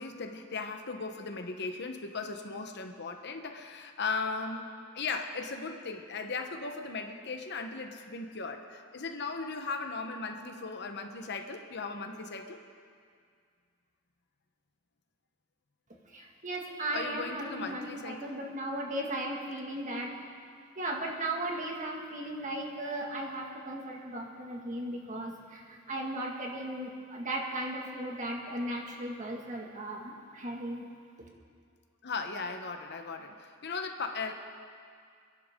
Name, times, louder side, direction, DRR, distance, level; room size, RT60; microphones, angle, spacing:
voice 1, 0.0-4.7 4.9-12.6 16.9-18.3 32.0-34.3, left 4 dB, 55° left, 5 dB, 1.1 m, -37 dB
voice 2, 16.1-20.1 20.8-30.8, right 1 dB, 40° right, -1 dB, 2.1 m, -36 dB
28.0 x 11.0 x 3.8 m, 2.2 s
head